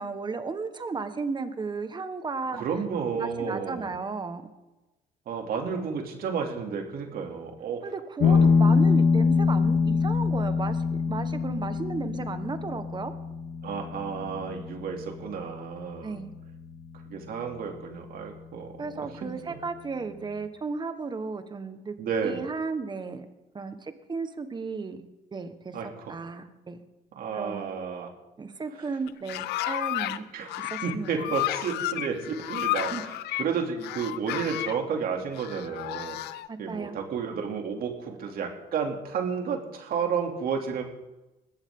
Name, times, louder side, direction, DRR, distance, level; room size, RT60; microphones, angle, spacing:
voice 1, 0.0-2.6 3.1-4.4 7.8-13.1 16.0-16.3 18.8-21.9 22.2-23.3 23.5-25.0 25.3-25.8 26.1-26.8 27.3-27.7 28.4-30.3 30.6-31.3 32.9-33.0 36.5-37.0, right 4 dB, 25° right, 9 dB, 1.5 m, -34 dB
voice 2, 2.5-3.9 5.3-7.8 8.2-8.4 13.6-16.1 17.1-19.6 22.0-22.4 25.7-26.1 27.2-28.1 30.3-36.2 36.6-40.8, right 6 dB, 60° right, 2 dB, 3.0 m, -32 dB
sound 1, 8.2-17.2, left 5 dB, 60° left, 1.7 m, -25 dB
sound 2, 29.1-30.2 30.5-33.5 33.8-34.8 35.3-36.5, left 15 dB, 80° left, 0.7 m, -32 dB
21.0 x 15.0 x 3.9 m, 1.0 s
cardioid pair, 110°, 17 cm